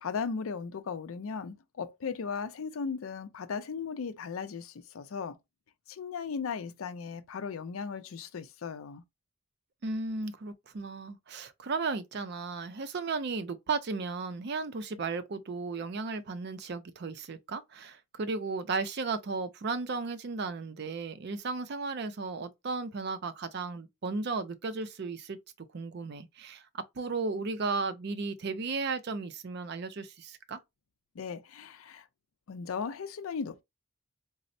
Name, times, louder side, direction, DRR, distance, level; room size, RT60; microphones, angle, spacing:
voice 1, 0.0-5.4 5.9-9.0 31.1-32.1 32.5-33.6, left 5 dB, 85° left, 0.5 m, -37 dB
voice 2, 9.8-25.4 25.7-30.6, right 4 dB, 55° right, 0.5 m, -35 dB
4.1 x 2.0 x 2.6 m
head